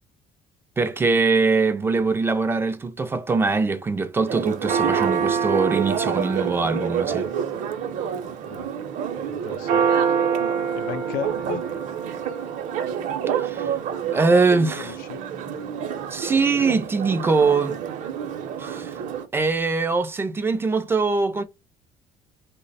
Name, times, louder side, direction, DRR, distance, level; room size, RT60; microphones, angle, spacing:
voice 1, 0.8-7.3 13.4-13.7 14.1-15.0 16.1-17.8 18.6-18.9 19.3-21.4, right 4 dB, 15° right, 0.3 m, -22 dB
Church bell, 4.3-19.3, right 7 dB, 60° right, 0.6 m, -26 dB
voice 2, 8.2-8.7 9.3-9.9 10.7-11.7 14.8-15.2, left 9 dB, 85° left, 0.5 m, -35 dB
3.2 x 2.0 x 4.0 m
cardioid pair, 165°, 14 cm